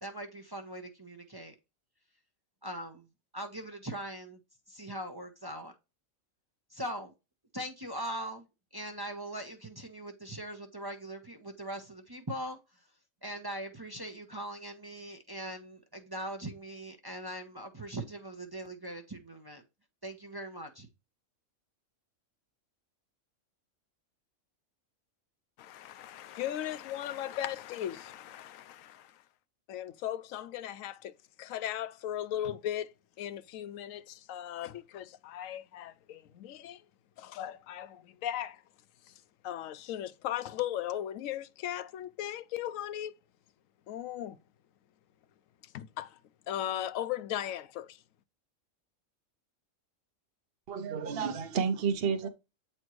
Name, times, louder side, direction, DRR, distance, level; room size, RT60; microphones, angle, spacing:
voice 1, 0.0-1.5 2.6-3.1 3.3-4.4 4.7-5.7 6.7-7.1 7.5-8.5 8.7-12.6 13.2-19.6 20.0-20.9, right 1 dB, 20° right, 0.7 m, -41 dB
voice 2, 25.6-29.2 29.7-31.1 31.4-36.8 37.2-38.6 39.1-39.2 39.4-43.1 43.9-44.4 45.6-46.2 46.5-48.0, left 11 dB, 75° left, 1.0 m, -37 dB
voice 3, 50.7-52.3, right 6 dB, 50° right, 0.9 m, -30 dB
8.1 x 4.3 x 3.1 m
omnidirectional pair, 1.4 m